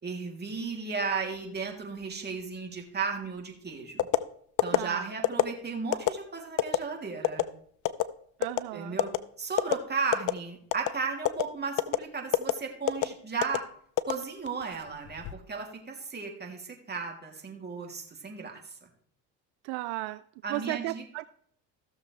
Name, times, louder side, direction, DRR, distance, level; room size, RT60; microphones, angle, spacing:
voice 1, 0.0-4.1 4.6-7.4 8.7-9.1 9.4-13.6 14.1-18.9 20.4-21.0, right 5 dB, 25° right, 1 dB, 3.1 m, -35 dB
sound 1, 4.0-4.2 4.6-4.8 5.2-5.5 5.9-6.1 6.6-6.8 7.2-7.4 7.8-8.0 8.4-8.6 9.0-9.2 9.6-9.7 10.1-10.4 10.7-10.9 11.2-11.4 11.8-12.0 12.3-12.5 12.9-13.1 13.4-13.6 14.0-14.6 15.0-15.3, left 14 dB, 50° left, 0.7 m, -24 dB
voice 2, 4.7-5.1 8.4-9.0 19.6-20.2 20.5-21.3, right 19 dB, 75° right, 15 dB, 0.5 m, -35 dB
16.0 x 6.8 x 3.4 m, 0.63 s
supercardioid pair, 80°, 39 cm